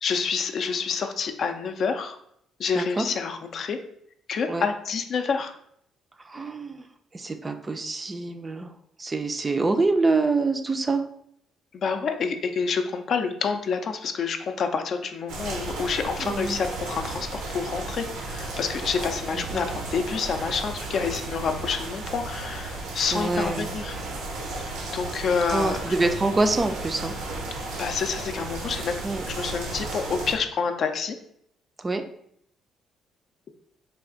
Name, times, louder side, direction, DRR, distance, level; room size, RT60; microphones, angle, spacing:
voice 1, 0.0-2.2 2.6-3.8 4.3-5.5 11.7-23.9 24.6-25.9 27.8-29.0 29.3-31.2, left 5 dB, 55° left, 7 dB, 0.4 m, -28 dB
voice 2, 2.8-3.1 4.5-4.7 6.2-6.8 7.1-8.7 9.0-11.0 16.2-16.6 19.3-19.8 23.1-23.7 25.5-27.2 29.0-29.2 31.8-32.0, right 3 dB, 25° right, 7 dB, 0.4 m, -26 dB
sound 1, 15.3-30.4, right 2 dB, 90° right, 0.7 m, -34 dB
3.3 x 2.4 x 3.7 m, 0.70 s
cardioid pair, 105°, 0 cm